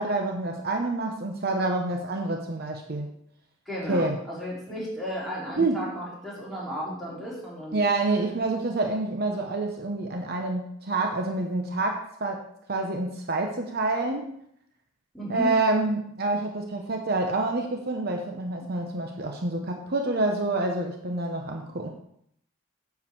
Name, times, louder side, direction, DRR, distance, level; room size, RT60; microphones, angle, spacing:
voice 1, 0.0-3.1 3.9-4.2 5.6-5.8 7.7-12.4 12.7-14.3 15.3-21.9, right 2 dB, 50° right, 3 dB, 0.9 m, -27 dB
voice 2, 3.7-7.8 15.1-15.5, equal, ahead, -7 dB, 3.7 m, -34 dB
9.8 x 4.8 x 7.2 m, 0.70 s
head